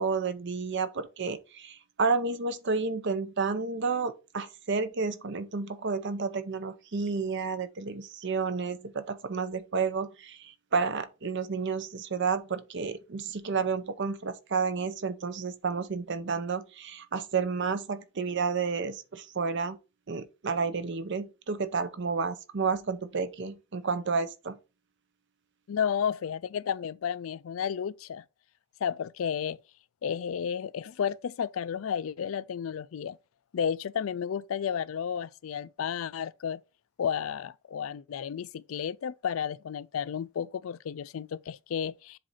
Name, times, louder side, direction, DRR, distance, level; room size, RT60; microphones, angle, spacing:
voice 1, 0.0-19.8 20.1-24.6, right 5 dB, 60° right, 0.7 m, -31 dB
voice 2, 25.7-28.2 28.8-29.6 30.0-33.2 33.5-36.6 37.0-42.2, left 8 dB, 80° left, 0.4 m, -32 dB
7.5 x 2.6 x 5.6 m
head